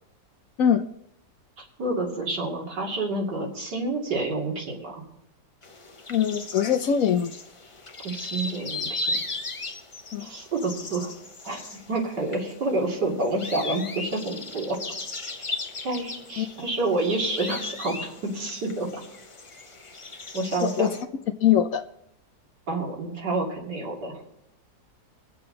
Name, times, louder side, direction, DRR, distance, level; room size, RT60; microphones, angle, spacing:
voice 1, 1.6-5.0 8.0-9.2 10.2-11.1 11.4-14.8 15.4-15.6 15.8-18.9 20.3-20.9 22.7-24.2, right 2 dB, 80° right, -2 dB, 3.1 m, -29 dB
sound 1, 5.6-21.0, left 2 dB, 30° left, 0.5 m, -37 dB
voice 2, 6.1-7.3 10.1-10.3 16.4-16.5 20.6-20.9 21.4-21.8, left 9 dB, 65° left, 9 dB, 0.9 m, -22 dB
23.0 x 7.7 x 3.9 m, 0.77 s
omnidirectional pair, 1.8 m